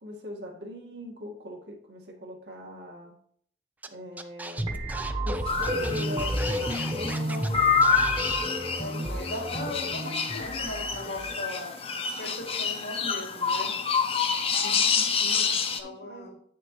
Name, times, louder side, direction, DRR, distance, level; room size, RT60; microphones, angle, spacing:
voice 1, 0.0-3.2 3.9-4.8 5.2-7.8 8.8-9.3 14.6-16.4, equal, 75° right, 0 dB, 1.8 m, -40 dB
Scratching (performance technique), 3.8-3.9 4.2-7.5 7.8-8.4, right 2 dB, 10° right, 0.4 m, -39 dB
sound 1, 4.6-11.5, right 1 dB, 25° right, 1.0 m, -32 dB
sound 2, 5.5-15.8, left 6 dB, 30° left, 0.7 m, -28 dB
voice 2, 8.7-11.7 12.2-13.8 15.8-16.4, left 2 dB, 85° left, 0 dB, 2.5 m, -38 dB
9.1 x 6.6 x 3.1 m, 0.63 s
head